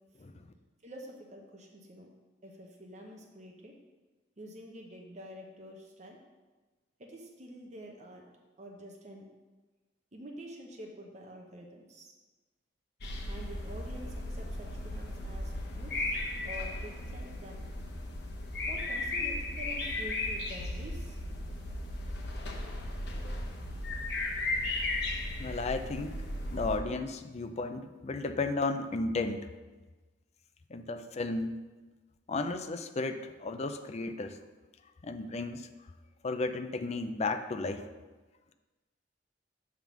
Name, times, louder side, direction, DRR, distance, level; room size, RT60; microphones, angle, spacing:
voice 1, 0.8-2.1 2.4-3.7 4.4-6.2 7.0-8.2 8.6-9.3 10.1-12.1 13.3-16.2 16.4-17.6 18.6-21.2, equal, 40° right, 1 dB, 0.8 m, -47 dB
sound 1, 13.0-26.8, left 2 dB, 60° left, 0.9 m, -36 dB
voice 2, 25.4-26.1 26.5-29.5 30.7-31.6 32.3-34.4 35.0-35.7 36.2-37.9, left 3 dB, 35° left, 8 dB, 0.5 m, -34 dB
7.4 x 3.6 x 6.1 m, 1.3 s
head